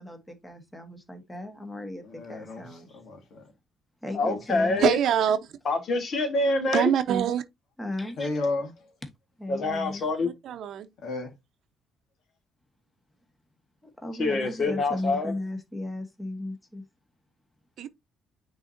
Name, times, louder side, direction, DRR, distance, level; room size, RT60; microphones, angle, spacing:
voice 1, 0.0-3.0 4.0-4.8 7.8-8.3 9.4-10.1 13.8-16.8, left 1 dB, 10° left, 1.4 m, -36 dB
voice 2, 2.1-2.7 2.9-3.4 4.6-4.8 8.2-8.7 11.0-11.3, left 2 dB, 60° left, 2.4 m, -32 dB
voice 3, 4.1-5.0 5.7-6.9 9.5-10.3 14.2-15.3, left 2 dB, 40° left, 1.9 m, -26 dB
voice 4, 4.8-5.4 6.7-7.4 10.2-10.9 17.8-17.9, right 9 dB, 60° right, 0.8 m, -24 dB
9.4 x 4.0 x 2.7 m
cardioid pair, 155°, 0 cm